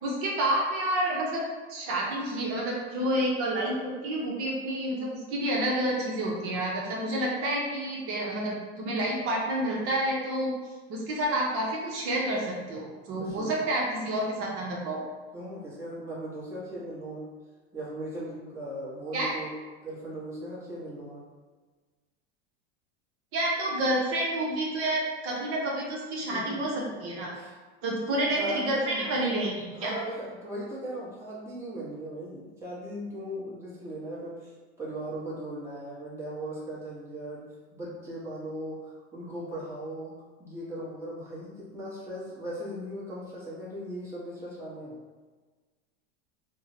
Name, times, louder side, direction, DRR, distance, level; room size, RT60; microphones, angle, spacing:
voice 1, 0.0-1.4 1.7-10.5 10.9-15.0 19.1-19.3 23.3-26.7 27.0-27.3 27.8-29.9, right 1 dB, 45° right, -3 dB, 0.8 m, -29 dB
voice 2, 13.2-13.6 15.3-17.3 17.7-19.5 19.8-21.2 26.3-27.0 27.3-27.5 28.4-29.0 29.7-37.5 37.7-45.0, right 1 dB, 10° right, -9 dB, 1.2 m, -38 dB
3.5 x 2.2 x 2.8 m, 1.3 s
supercardioid pair, 120°, 31 cm